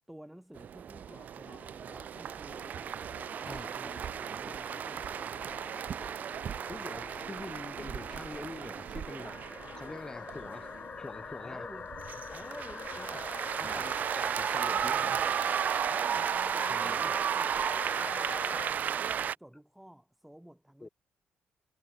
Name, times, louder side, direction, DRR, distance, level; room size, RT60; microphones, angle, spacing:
voice 1, 0.1-3.1 3.4-5.4 11.4-11.9 12.3-13.3 13.6-13.9 15.9-20.9, right 1 dB, 5° right, 2.4 m, -52 dB
sound 1, 0.6-19.3, right 8 dB, 50° right, 0.5 m, -34 dB
sound 2, 1.1-18.7, left 6 dB, 40° left, 1.7 m, -45 dB
voice 2, 6.7-9.4 9.7-11.7 13.0-13.1 13.6-15.3 16.7-17.1 20.8-20.9, left 3 dB, 15° left, 4.4 m, -45 dB
cardioid pair, 120°, 4 cm